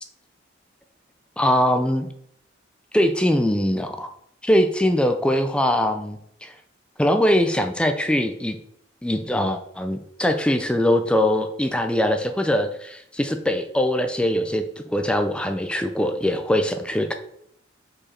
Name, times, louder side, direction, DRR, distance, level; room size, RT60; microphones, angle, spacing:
voice 1, 1.4-2.1 2.9-4.1 4.4-6.5 7.0-8.6 9.0-14.6 14.9-17.1, left 1 dB, 5° left, 7 dB, 0.4 m, -22 dB
4.9 x 4.8 x 4.3 m, 0.70 s
head